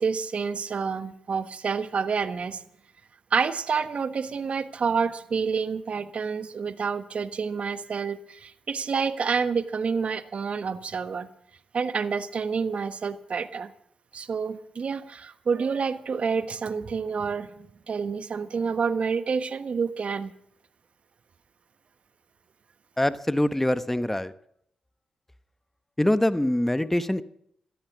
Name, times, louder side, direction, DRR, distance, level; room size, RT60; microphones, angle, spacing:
voice 1, 0.0-2.6 3.3-11.3 11.7-13.7 14.1-20.3, right 5 dB, 55° right, 12 dB, 1.2 m, -28 dB
voice 2, 23.0-24.3 26.0-27.2, left 1 dB, 10° left, 13 dB, 1.1 m, -24 dB
16.0 x 13.0 x 6.2 m, 0.69 s
supercardioid pair, 45°, 2 cm